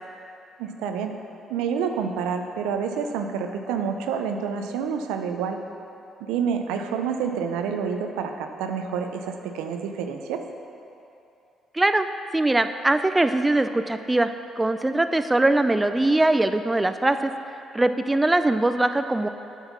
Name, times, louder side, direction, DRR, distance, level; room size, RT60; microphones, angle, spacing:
voice 1, 0.6-1.1 1.5-5.6 6.2-10.4, right 6 dB, 90° right, 5 dB, 0.5 m, -28 dB
voice 2, 11.7-12.1 12.3-14.3 14.6-17.3 17.7-19.3, right 2 dB, 15° right, 9 dB, 0.4 m, -21 dB
8.0 x 5.4 x 6.1 m, 2.8 s
supercardioid pair, 70°, 0 cm